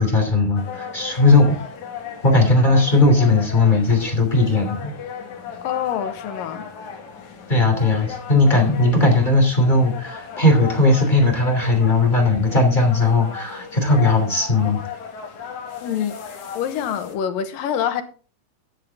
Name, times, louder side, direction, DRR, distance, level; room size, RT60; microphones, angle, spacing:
voice 1, 0.0-1.6 2.2-4.9 7.5-14.8, left 2 dB, 15° left, 2.8 m, -17 dB
sound 1, 0.6-17.2, left 7 dB, 60° left, 3.1 m, -36 dB
voice 2, 5.6-6.7 15.8-16.2 16.6-18.0, left 9 dB, 90° left, 2.8 m, -25 dB
13.0 x 9.4 x 3.6 m
omnidirectional pair, 3.9 m